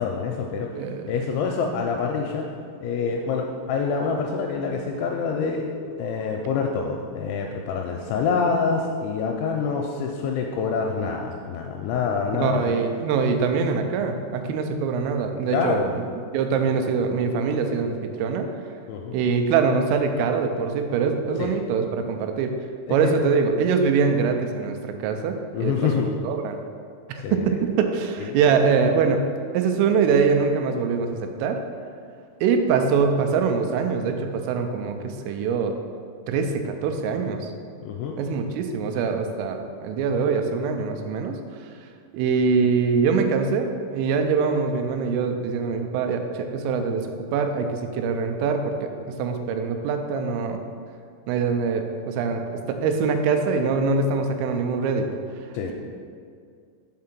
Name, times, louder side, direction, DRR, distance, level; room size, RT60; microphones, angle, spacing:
voice 1, 0.0-2.5 2.8-5.7 6.0-12.7 15.5-15.9 18.9-19.2 21.4-21.5 22.9-23.2 25.5-26.1 27.2-27.6 28.2-28.4 37.8-38.2 55.5-55.7, left 5 dB, 85° left, 1 dB, 2.6 m, -26 dB
voice 2, 0.7-1.3 12.3-15.8 16.3-18.5 19.1-22.5 22.9-26.6 27.1-29.2 29.5-31.6 32.4-35.8 36.3-37.5 38.2-41.4 42.1-48.9 49.2-50.6 51.3-55.1, right 5 dB, 90° right, 5 dB, 3.2 m, -23 dB
7.2 x 3.7 x 5.9 m, 2.2 s
omnidirectional pair, 5.6 m